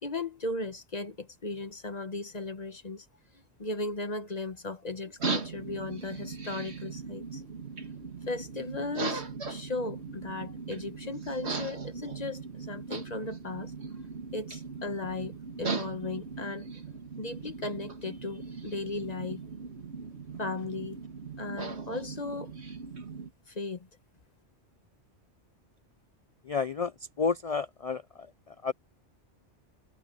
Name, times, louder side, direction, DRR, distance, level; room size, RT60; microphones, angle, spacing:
voice 1, 0.0-3.1 3.3-7.4 8.3-13.7 14.3-16.7 17.2-19.4 20.4-21.0 21.4-22.5 23.5-23.9, left 3 dB, 35° left, 1.2 m, -36 dB
sound 1, 5.2-23.3, right 4 dB, 65° right, 2.2 m, -38 dB
voice 2, 26.5-26.9 27.2-28.7, left 5 dB, 60° left, 0.3 m, -31 dB
omnidirectional pair, 1.2 m